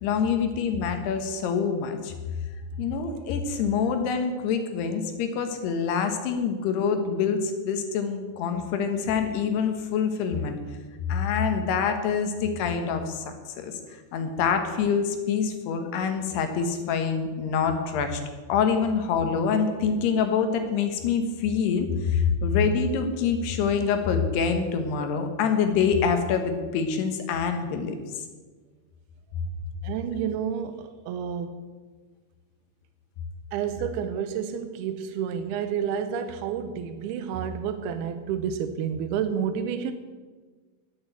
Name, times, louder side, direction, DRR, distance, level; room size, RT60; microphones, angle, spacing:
voice 1, 0.0-2.1 2.8-10.6 11.1-13.2 13.6-13.7 14.1-18.2 18.5-28.0, left 6 dB, 90° left, 7 dB, 3.4 m, -25 dB
voice 2, 29.8-31.6 33.5-39.9, right 7 dB, 85° right, 9 dB, 2.7 m, -30 dB
10.5 x 8.8 x 9.1 m, 1.4 s
omnidirectional pair, 4.6 m